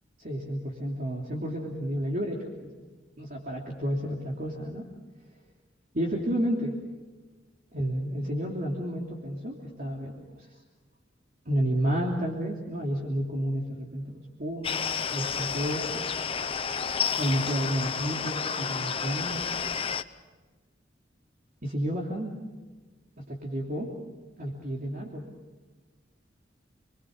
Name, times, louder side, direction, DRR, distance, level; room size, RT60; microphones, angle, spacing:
voice 1, 0.2-2.7 3.2-4.8 5.9-6.8 7.7-10.2 11.5-16.0 17.2-19.5 21.6-22.4 23.2-23.9 24.4-25.2, equal, 50° right, -1 dB, 3.0 m, -31 dB
sound 1, 14.6-20.0, left 6 dB, 30° left, 0.8 m, -31 dB
29.0 x 22.0 x 6.6 m, 1.3 s
head